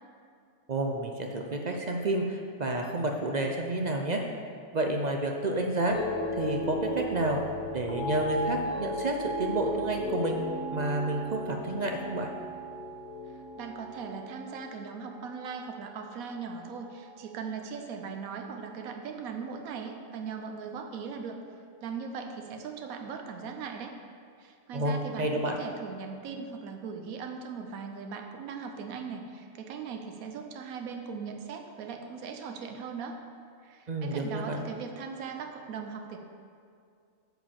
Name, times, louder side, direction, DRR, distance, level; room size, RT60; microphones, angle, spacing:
voice 1, 0.7-4.2 4.7-6.0 6.4-7.4 7.7-10.4 10.7-12.3 24.7-25.6 33.9-34.6, right 2 dB, 50° right, 2 dB, 0.5 m, -30 dB
sound 1, 5.9-16.2 16.5-17.1, equal, 50° left, 1.7 m, -36 dB
voice 2, 13.3-21.4 21.8-23.9 24.4-33.1 33.6-36.2, right 6 dB, 85° right, 4 dB, 1.2 m, -39 dB
7.9 x 5.1 x 7.3 m, 2.3 s
omnidirectional pair, 1.4 m